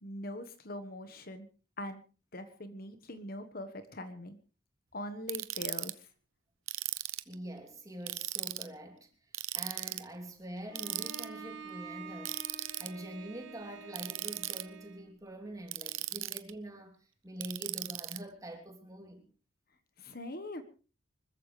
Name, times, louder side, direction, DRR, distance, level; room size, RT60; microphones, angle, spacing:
voice 1, 0.0-1.5 1.8-2.0 2.3-4.4 4.9-6.1 20.0-20.6, left 1 dB, 45° left, 1.4 m, -42 dB
Ratchet pawl, 5.3-5.9 6.7-7.3 8.1-8.7 9.3-10.0 10.8-11.3 12.3-12.9 13.9-14.6 15.7-16.5 17.4-18.2, right 16 dB, 85° right, 0.9 m, -37 dB
voice 2, 7.3-19.2, right 1 dB, 15° right, 3.2 m, -45 dB
Bowed string instrument, 10.7-15.1, right 4 dB, 70° right, 4.5 m, -48 dB
25.0 x 14.5 x 3.3 m
head